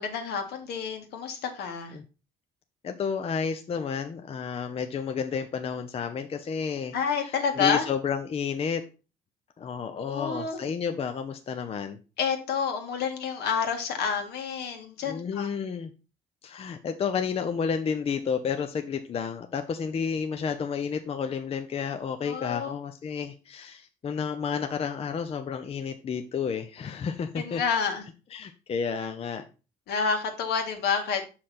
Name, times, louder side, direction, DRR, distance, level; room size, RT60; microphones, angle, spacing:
voice 1, 0.0-2.0 6.9-7.9 10.0-10.6 12.2-15.5 22.2-22.8 27.4-28.1 29.9-31.3, left 6 dB, 75° left, 5 dB, 1.8 m, -29 dB
voice 2, 2.8-6.9 7.6-8.9 9.6-12.0 15.0-15.9 16.4-27.6 28.3-29.5, left 6 dB, 35° left, 7 dB, 0.6 m, -31 dB
6.5 x 5.7 x 4.3 m, 0.32 s
cardioid pair, 110°, 17 cm